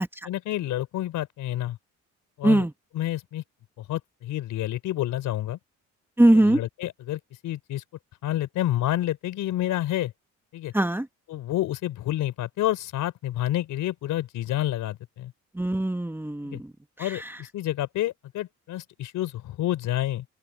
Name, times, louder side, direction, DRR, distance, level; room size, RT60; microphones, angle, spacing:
voice 1, 0.2-1.8 2.4-2.6 2.9-3.4 3.8-5.6 6.3-7.8 8.2-10.1 10.5-10.7 11.3-15.3 16.4-16.6 17.0-20.2, left 13 dB, 85° left, 4.3 m, -29 dB
voice 2, 6.2-6.6 10.7-11.1 15.5-16.7, right 1 dB, 5° right, 1.5 m, -20 dB
open air
cardioid pair, 90°, 30 cm